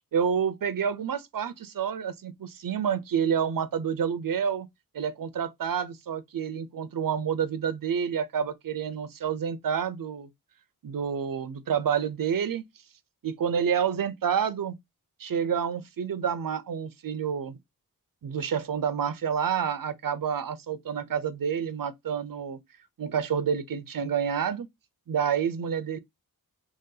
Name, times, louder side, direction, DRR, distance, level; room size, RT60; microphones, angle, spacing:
voice 1, 0.1-4.7 4.9-10.3 10.8-12.6 13.2-14.8 15.2-17.6 18.2-22.6 23.0-24.7 25.1-26.0, right 7 dB, 65° right, 0.6 m, -28 dB
3.1 x 2.7 x 3.7 m
wide cardioid pair, 85°, 36 cm